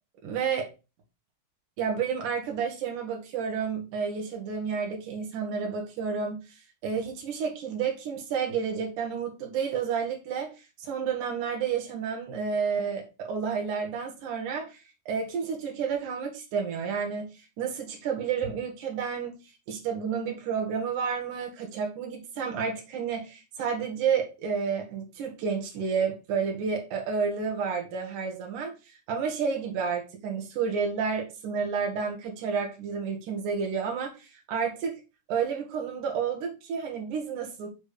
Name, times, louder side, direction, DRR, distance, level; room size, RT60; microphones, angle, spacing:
voice 1, 0.2-0.7 1.8-6.4 6.8-10.5 10.8-19.4 19.7-28.7 29.1-35.0 35.3-37.7, right 6 dB, 70° right, 2 dB, 1.9 m, -30 dB
7.4 x 3.7 x 4.9 m, 0.29 s
omnidirectional pair, 6.0 m